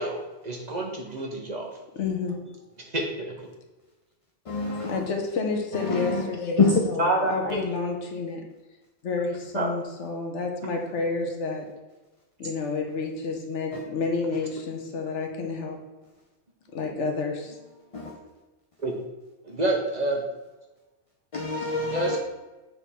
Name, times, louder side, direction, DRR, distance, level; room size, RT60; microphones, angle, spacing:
voice 1, 0.0-1.7 2.9-3.3 7.0-7.6 9.5-9.7 18.8-18.9 19.4-20.2 21.9-22.2, right 1 dB, 40° right, 0.9 m, -27 dB
voice 2, 1.9-2.4 4.9-8.4 9.0-11.6 12.4-15.8 16.7-17.6, left 4 dB, 75° left, 1.2 m, -30 dB
voice 3, 4.5-5.0 5.8-6.2 6.6-6.8 17.9-18.1 21.3-22.2, left 3 dB, 40° left, 0.5 m, -25 dB
7.3 x 3.5 x 4.2 m
omnidirectional pair, 1.2 m